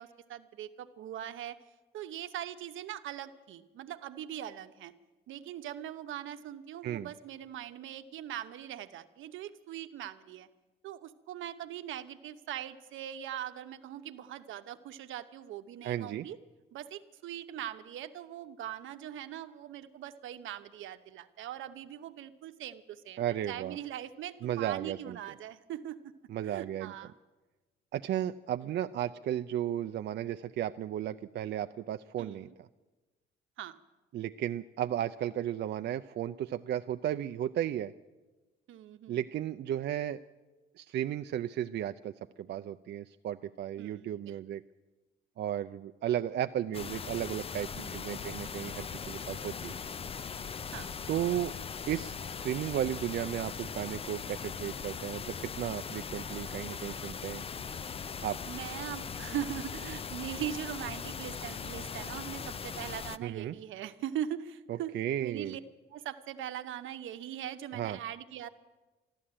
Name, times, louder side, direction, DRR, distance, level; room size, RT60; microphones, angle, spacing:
voice 1, 0.0-1.6 1.9-4.9 5.3-10.5 10.8-16.4 16.7-23.2 23.5-26.1 26.4-27.1 32.2-32.5 33.6-33.8 38.7-39.2 43.8-44.4 47.7-48.4 50.7-50.9 58.4-64.9 65.2-65.6 65.9-68.5, right 11 dB, 80° right, 9 dB, 0.9 m, -41 dB
voice 2, 15.8-16.3 23.2-23.8 24.4-25.2 26.3-26.9 27.9-32.5 34.1-37.9 39.1-40.2 40.8-44.6 45.4-49.7 51.1-51.5 51.9-57.4 58.2-58.4 63.2-63.5 64.7-65.6 67.7-68.0, right 11 dB, 60° right, 8 dB, 0.4 m, -34 dB
sound 1, 46.7-63.2, left 6 dB, 30° left, 0.4 m, -40 dB
12.5 x 12.5 x 8.7 m, 1.2 s
cardioid pair, 90°, 20 cm